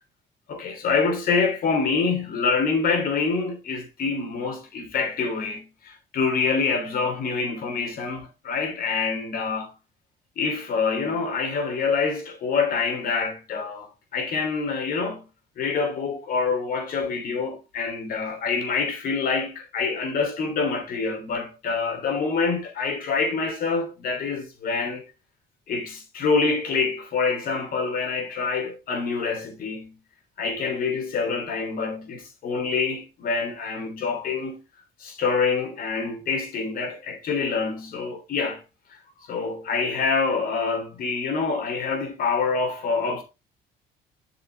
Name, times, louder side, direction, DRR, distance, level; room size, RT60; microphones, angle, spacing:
voice 1, 0.5-9.7 10.4-15.2 15.6-25.0 25.7-30.0 30.4-34.6 35.0-38.6 39.3-43.2, left 4 dB, 60° left, 3.3 m, -26 dB
8.1 x 6.5 x 3.5 m
cardioid pair, 110°, 17 cm